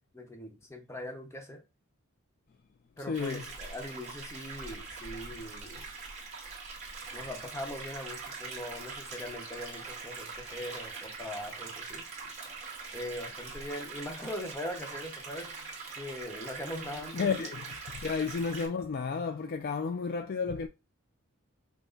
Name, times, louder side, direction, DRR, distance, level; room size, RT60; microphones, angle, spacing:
voice 1, 0.1-1.6 3.0-5.9 7.1-12.0 12.9-15.5 16.0-17.5, left 1 dB, 10° left, 0.9 m, -41 dB
voice 2, 3.1-3.4 17.1-17.6 17.9-20.7, left 5 dB, 45° left, 0.3 m, -32 dB
sound 1, 3.1-18.7, right 4 dB, 30° right, 1.6 m, -43 dB
5.9 x 2.1 x 3.9 m
head